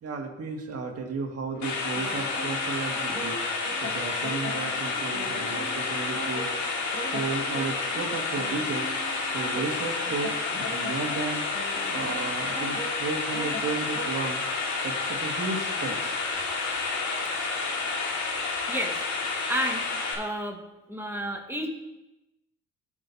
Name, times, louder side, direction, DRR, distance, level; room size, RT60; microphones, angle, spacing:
voice 1, 0.0-3.4 3.8-6.5 7.1-8.9 9.3-11.4 11.9-14.4 14.8-16.2, right 4 dB, 50° right, 1 dB, 1.9 m, -33 dB
sound 1, 1.5-14.3, right 1 dB, 35° left, 2.9 m, -40 dB
sound 2, 1.6-20.1, left 4 dB, 70° left, 1.9 m, -30 dB
voice 2, 18.7-19.0 19.5-19.9 20.1-20.6 20.9-21.7, equal, 10° right, 1 dB, 1.6 m, -31 dB
15.5 x 6.2 x 2.8 m, 0.98 s
cardioid pair, 90°, 30 cm